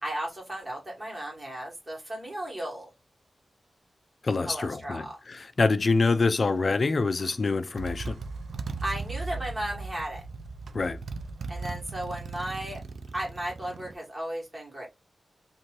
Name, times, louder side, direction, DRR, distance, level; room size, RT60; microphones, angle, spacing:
voice 1, 0.0-2.9 4.4-5.2 8.8-10.2 11.5-12.8 13.1-14.9, right 1 dB, 25° right, 1.4 m, -35 dB
voice 2, 4.2-8.2 10.7-11.0, left 3 dB, 45° left, 0.4 m, -26 dB
Motorcycle, 7.2-7.4 7.8-13.9, right 3 dB, 85° right, 0.4 m, -38 dB
2.6 x 2.6 x 3.0 m
wide cardioid pair, 130°, 0 cm